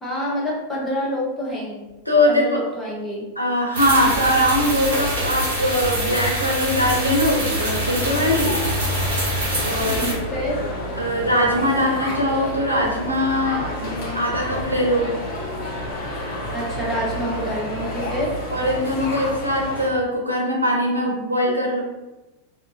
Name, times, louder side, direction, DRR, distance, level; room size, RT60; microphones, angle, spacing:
voice 1, 0.0-1.8 2.3-3.2 9.8-10.6 16.5-18.3, equal, 10° left, -6 dB, 0.9 m, -27 dB
voice 2, 2.1-2.6 3.4-8.7 9.6-10.4 11.0-15.1 18.5-21.8, equal, 90° left, -2 dB, 0.5 m, -21 dB
sound 1, 3.7-10.1, equal, 60° right, 1.4 m, -25 dB
sound 2, 7.5-19.9, equal, 45° left, 0.7 m, -30 dB
2.6 x 2.5 x 2.6 m, 1.1 s
figure-of-eight pair, 90°, 0 cm